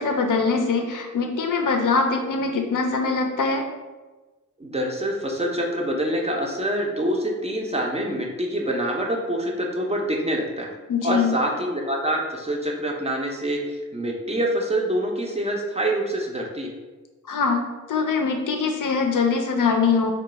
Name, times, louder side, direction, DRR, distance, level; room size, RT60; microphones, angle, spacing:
voice 1, 0.0-3.6 10.9-11.4 17.3-17.6 17.9-20.1, left 4 dB, 85° left, 3 dB, 0.5 m, -22 dB
voice 2, 4.6-10.7 11.0-16.7, right 1 dB, 20° right, 0 dB, 0.4 m, -26 dB
2.3 x 2.2 x 3.9 m, 1.2 s
wide cardioid pair, 125°, 31 cm